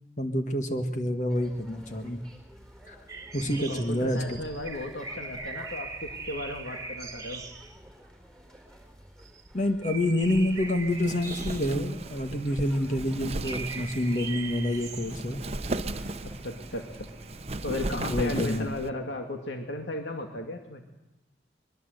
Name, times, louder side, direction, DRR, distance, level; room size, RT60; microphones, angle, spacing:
voice 1, 0.2-2.2 2.9-3.0 3.3-4.4 9.5-15.4 17.9-18.7, left 1 dB, 45° left, 6 dB, 1.6 m, -28 dB
sound 1, 1.3-18.0, equal, 5° left, 4.6 m, -52 dB
sound 2, 3.1-7.8 9.3-9.5 9.8-12.0 13.4-15.3, right 4 dB, 20° right, 2.0 m, -40 dB
voice 2, 3.7-7.4 16.2-17.1 17.6-20.8, left 2 dB, 85° left, 4 dB, 2.4 m, -35 dB
Wind, 10.2-18.9, right 2 dB, 35° right, 0.9 m, -37 dB
23.5 x 22.0 x 8.0 m, 1.0 s
head